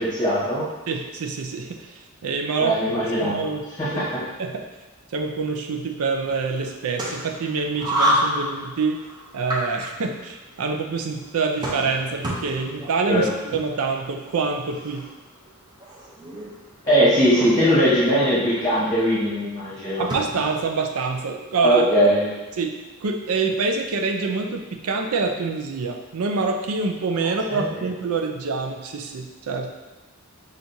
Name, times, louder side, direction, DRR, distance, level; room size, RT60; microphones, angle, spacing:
voice 1, 0.2-0.6 2.6-3.4 3.8-4.0 13.1-13.3 16.8-20.0 21.6-22.2 27.5-27.7, equal, 15° left, -10 dB, 1.1 m, -20 dB
voice 2, 0.9-3.6 4.4-4.6 5.1-9.0 9.3-15.1 20.0-21.9 22.6-22.7 23.0-29.7, right 4 dB, 90° right, 3 dB, 0.5 m, -26 dB
sound 1, 6.2-20.7, equal, 20° right, 0.6 m, -31 dB
5.8 x 2.5 x 2.7 m, 1.2 s
head